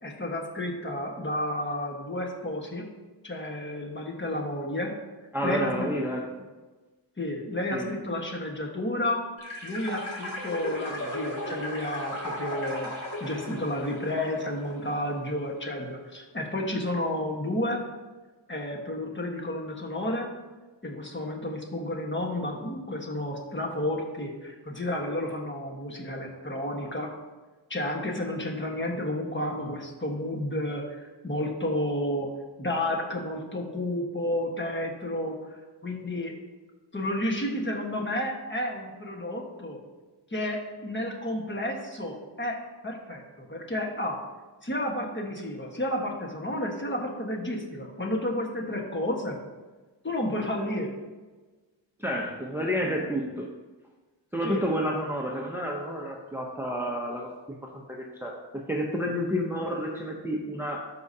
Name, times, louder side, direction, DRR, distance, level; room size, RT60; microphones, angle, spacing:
voice 1, 0.0-2.9 3.2-4.9 5.4-5.9 7.2-9.2 9.6-12.9 13.2-17.8 18.5-20.3 20.8-27.1 27.7-32.3 32.6-35.4 35.8-36.3 36.9-39.8 40.3-42.6 42.8-44.2 44.6-49.4 50.0-50.9 54.4-54.6, left 1 dB, 25° left, 0 dB, 1.4 m, -31 dB
voice 2, 5.3-6.3 7.7-7.9 52.0-53.5 54.3-60.8, equal, 5° right, -1 dB, 0.7 m, -30 dB
sound 1, 9.4-15.1, left 1 dB, 45° left, 2.2 m, -36 dB
12.5 x 4.9 x 2.8 m, 1.3 s
wide cardioid pair, 95°, 45 cm